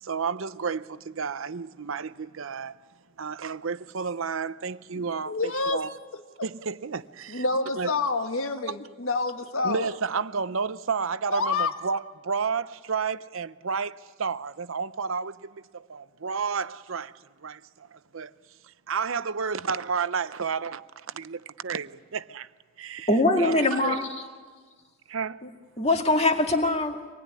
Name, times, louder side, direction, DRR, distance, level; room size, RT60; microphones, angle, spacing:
voice 1, 0.0-2.7 3.2-5.9 6.4-7.4 7.8-7.9 9.6-17.1 17.4-18.3 18.6-22.5 22.8-23.1 23.4-24.0 25.1-25.4, right 5 dB, 70° right, 0.7 m, -31 dB
voice 2, 4.9-5.8 6.1-6.5 7.3-9.9 11.3-11.7, left 3 dB, 75° left, 1.5 m, -28 dB
voice 3, 23.1-24.3 25.4-25.5 25.8-27.1, left 2 dB, 30° left, 2.2 m, -23 dB
25.5 x 19.5 x 9.7 m
head